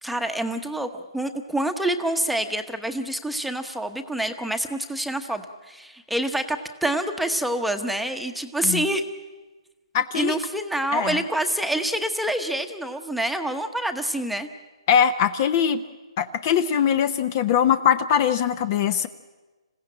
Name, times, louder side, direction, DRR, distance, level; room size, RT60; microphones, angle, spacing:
voice 1, 0.0-9.0 10.1-14.5, right 1 dB, ahead, 5 dB, 1.0 m, -27 dB
voice 2, 9.9-10.4 10.9-11.2 14.9-15.8 16.2-19.1, left 8 dB, 35° left, 13 dB, 0.7 m, -21 dB
26.5 x 16.0 x 8.7 m, 1.3 s
hypercardioid pair, 150°, 3 cm